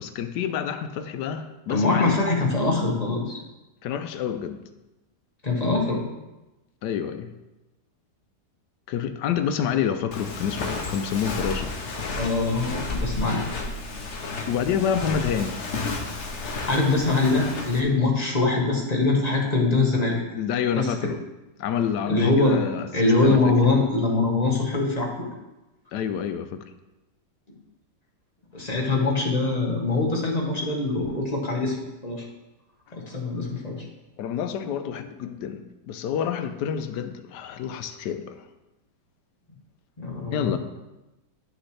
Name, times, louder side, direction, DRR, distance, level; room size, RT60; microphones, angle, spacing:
voice 1, 0.0-2.2 3.8-4.6 6.8-7.3 8.9-11.7 14.5-15.6 20.3-21.2 21.6-23.5 25.9-26.6 34.2-38.5 40.3-40.6, left 8 dB, 85° left, 9 dB, 1.2 m, -28 dB
voice 2, 1.7-3.4 5.4-6.0 12.2-13.4 16.6-20.2 20.7-21.1 22.1-22.6 22.9-25.3 28.5-32.2 32.9-33.8 40.0-40.6, left 3 dB, 25° left, -1 dB, 1.4 m, -23 dB
Walk footsteps, 10.1-17.8, left 3 dB, 50° left, 1.1 m, -32 dB
10.5 x 6.4 x 3.2 m, 1.0 s
omnidirectional pair, 1.8 m